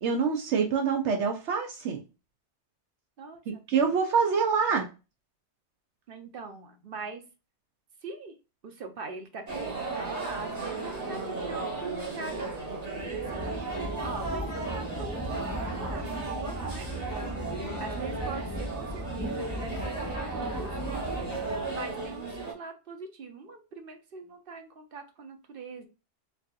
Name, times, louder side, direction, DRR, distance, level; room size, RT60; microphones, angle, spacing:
voice 1, 0.0-2.0 3.7-4.9, right 5 dB, 75° right, 3 dB, 1.0 m, -25 dB
voice 2, 3.2-3.8 4.6-4.8 6.1-7.2 8.0-8.3 8.6-13.7 14.0-17.4 17.8-21.2 21.7-25.9, right 4 dB, 60° right, 6 dB, 0.8 m, -42 dB
sound 1, 9.5-22.5, right 3 dB, 35° right, 1.2 m, -35 dB
sound 2, 12.9-22.0, equal, 15° left, 0.4 m, -38 dB
4.4 x 2.8 x 2.4 m, 0.30 s
omnidirectional pair, 1.2 m